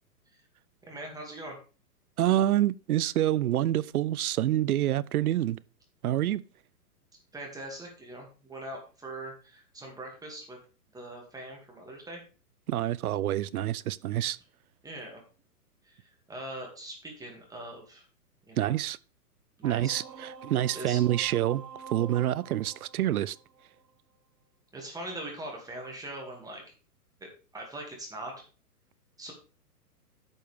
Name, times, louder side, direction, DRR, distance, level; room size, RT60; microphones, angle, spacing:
voice 1, 0.9-1.6 7.3-10.6 10.9-12.2 14.8-15.2 15.9-16.0 16.3-18.0 18.5-18.7 19.6-20.0 20.7-21.0 24.7-26.7 27.2-28.4 29.2-29.3, right 1 dB, 5° right, 2.3 m, -41 dB
voice 2, 2.2-5.6 6.0-6.4 12.7-14.4 18.6-19.0 19.6-21.6 21.9-23.4, right 13 dB, 65° right, 0.6 m, -27 dB
sound 1, 19.6-23.9, right 5 dB, 90° right, 1.3 m, -46 dB
10.5 x 6.4 x 3.5 m
hypercardioid pair, 125°, 48 cm